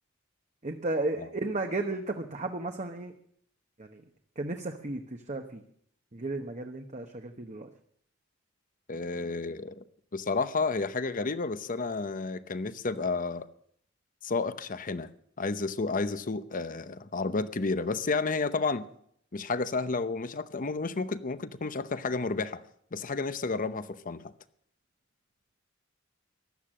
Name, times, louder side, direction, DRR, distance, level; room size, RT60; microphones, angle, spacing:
voice 1, 0.6-3.1 3.8-4.0 4.4-5.6 6.1-7.7, right 2 dB, 35° right, 1.1 m, -34 dB
voice 2, 8.9-9.8 10.1-13.5 14.2-15.1 15.4-18.9 19.3-22.6 22.9-24.2, left 3 dB, 45° left, 0.8 m, -31 dB
15.5 x 12.0 x 7.6 m
head